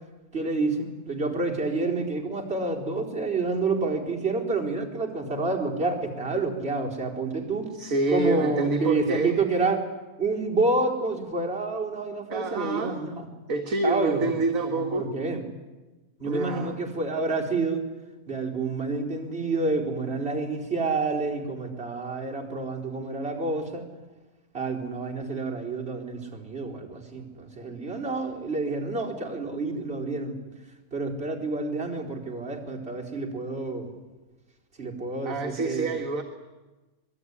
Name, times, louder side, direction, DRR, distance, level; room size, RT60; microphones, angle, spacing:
voice 1, 0.3-7.7 8.1-9.9 10.2-13.3 13.8-14.3 14.6-15.4 16.2-17.8 18.3-23.9 24.5-30.4 30.9-33.9 34.8-36.0, right 3 dB, 40° right, -1 dB, 4.7 m, -28 dB
voice 2, 7.7-9.4 12.3-13.0 13.5-15.1 16.2-16.8 35.3-36.2, right 2 dB, 60° right, 3 dB, 2.1 m, -27 dB
26.0 x 21.5 x 9.9 m, 1.2 s
omnidirectional pair, 1.6 m